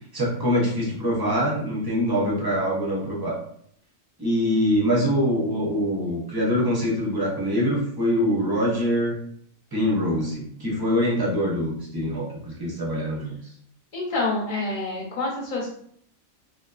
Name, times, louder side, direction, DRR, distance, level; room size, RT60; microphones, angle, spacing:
voice 1, 0.1-3.4 4.2-9.2 9.7-13.4, equal, 30° right, -4 dB, 0.4 m, -24 dB
voice 2, 13.9-15.7, left 2 dB, 45° left, -3 dB, 0.8 m, -27 dB
2.8 x 2.1 x 2.3 m, 0.64 s
omnidirectional pair, 1.4 m